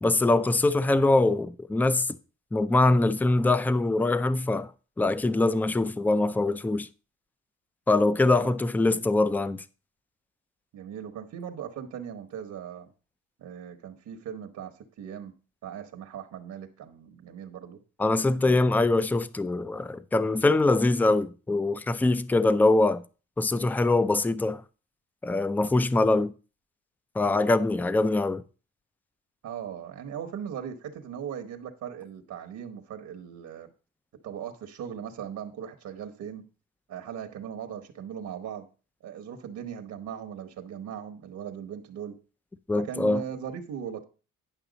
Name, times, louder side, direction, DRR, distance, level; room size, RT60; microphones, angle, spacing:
voice 1, 0.0-2.1 2.5-4.7 5.0-6.9 7.9-9.6 18.0-23.0 23.4-24.6 25.2-26.3 27.2-28.4 42.7-43.2, left 2 dB, 5° left, 0.4 m, -23 dB
voice 2, 10.7-12.9 13.4-15.3 15.6-17.8 18.4-18.8 29.4-33.7 34.2-36.5 36.9-38.7 39.0-42.2 42.7-44.0, right 8 dB, 70° right, 1.1 m, -39 dB
10.0 x 5.9 x 4.0 m
cardioid pair, 90°, 30 cm